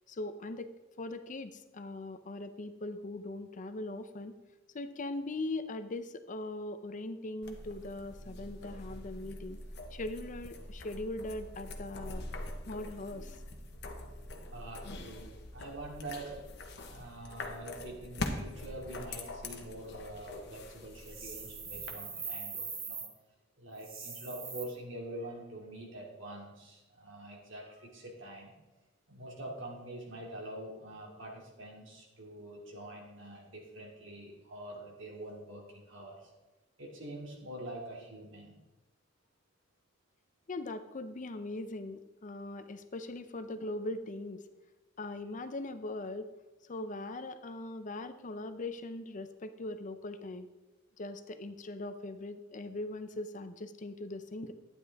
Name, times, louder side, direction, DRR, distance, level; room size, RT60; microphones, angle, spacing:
voice 1, 0.1-0.7 1.0-4.3 4.7-9.6 9.9-12.3 12.7-13.4 40.5-44.4 45.0-46.3 46.7-50.5 51.0-54.5, left 2 dB, 40° left, 10 dB, 0.6 m, -40 dB
sound 1, 7.4-21.9, left 2 dB, 60° left, 1.2 m, -44 dB
voice 2, 14.5-16.4 16.9-23.0 23.6-28.5 29.1-36.3 36.8-38.6, right 1 dB, 70° right, -1 dB, 2.6 m, -45 dB
sound 2, 21.0-23.1 23.7-24.6, right 5 dB, 50° right, 2.0 m, -41 dB
12.0 x 9.7 x 3.5 m, 1.1 s
head